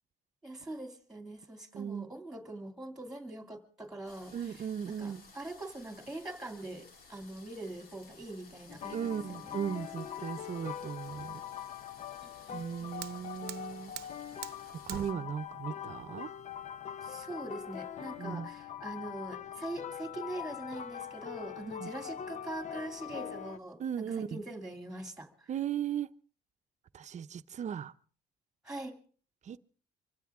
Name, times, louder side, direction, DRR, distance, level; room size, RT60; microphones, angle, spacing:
voice 1, 0.4-9.5 12.2-12.9 17.0-25.5 28.6-29.0, right 2 dB, 5° right, 2.7 m, -43 dB
voice 2, 1.7-2.1 4.3-5.2 8.9-11.4 12.5-13.9 14.9-16.3 18.2-18.5 21.8-21.9 23.8-24.4 25.5-26.1 26.9-27.9 29.4-29.6, right 8 dB, 45° right, 0.8 m, -37 dB
sound 1, 4.1-15.1, left 4 dB, 65° left, 2.8 m, -57 dB
sound 2, 8.7-23.6, left 9 dB, 45° left, 0.7 m, -43 dB
Fire, 12.4-18.3, right 14 dB, 75° right, 0.8 m, -48 dB
25.0 x 15.5 x 3.7 m
cardioid pair, 110°, 17 cm